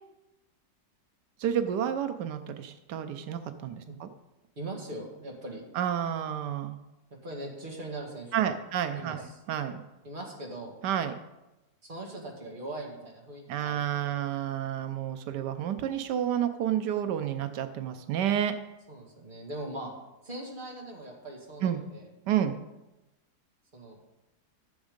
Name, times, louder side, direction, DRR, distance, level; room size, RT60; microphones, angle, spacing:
voice 1, 1.4-4.1 5.7-6.8 8.3-9.8 10.8-11.1 13.5-18.5 21.6-21.8 22.3-22.6, right 10 dB, 85° right, 8 dB, 1.3 m, -30 dB
voice 2, 4.6-5.6 7.2-8.6 8.9-9.3 10.0-10.7 11.9-14.1 18.9-19.9 20.2-22.1 23.7-24.0, right 1 dB, 30° right, -1 dB, 2.1 m, -40 dB
13.0 x 7.2 x 5.1 m, 1.0 s
omnidirectional pair, 1.8 m